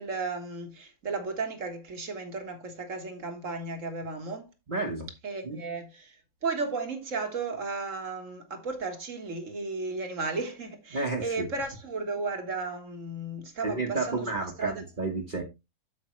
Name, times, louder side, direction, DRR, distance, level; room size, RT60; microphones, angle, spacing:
voice 1, 0.0-4.5 5.2-6.2 6.4-14.8, right 3 dB, 55° right, 1.9 m, -34 dB
voice 2, 4.7-5.1 5.4-5.6 10.9-11.5 13.6-15.4, right 3 dB, 35° right, 1.5 m, -31 dB
8.3 x 7.2 x 3.1 m
omnidirectional pair, 1.6 m